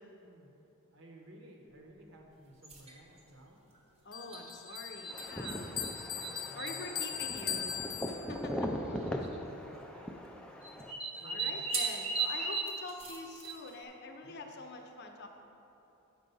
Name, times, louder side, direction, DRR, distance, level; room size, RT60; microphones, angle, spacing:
voice 1, 0.9-3.6 6.0-7.0 9.0-10.1 10.7-11.6 14.2-14.5, right 1 dB, 60° right, 1 dB, 0.9 m, -56 dB
sound 1, 2.6-3.0 4.3-5.6 5.8-6.8 7.7-7.8 8.0-8.1 9.1-9.4 10.6-13.8, right 4 dB, 25° right, 0.8 m, -36 dB
voice 2, 4.0-5.7 6.5-7.8 8.1-8.7 11.2-15.3, left 3 dB, 50° left, 4 dB, 0.6 m, -45 dB
Bell, 4.1-8.6, left 9 dB, 80° left, 0.8 m, -40 dB
sound 2, 5.1-10.9, equal, 5° left, 0.4 m, -40 dB
8.0 x 4.8 x 5.4 m, 3.0 s
head